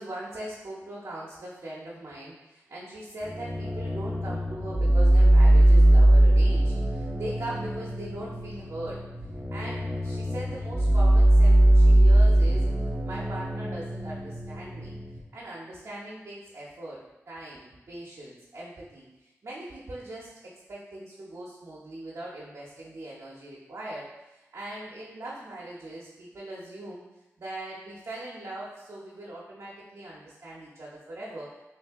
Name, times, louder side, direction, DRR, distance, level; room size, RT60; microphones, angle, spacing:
voice 1, 0.0-9.0 9.5-12.7 13.0-14.9 15.3-17.0 17.3-27.0 27.4-31.5, right 1 dB, 65° right, -7 dB, 0.8 m, -40 dB
sound 1, 3.2-15.2, right 1 dB, 25° right, 0.6 m, -21 dB
3.2 x 2.6 x 3.5 m, 1.0 s
cardioid pair, 40°, 6 cm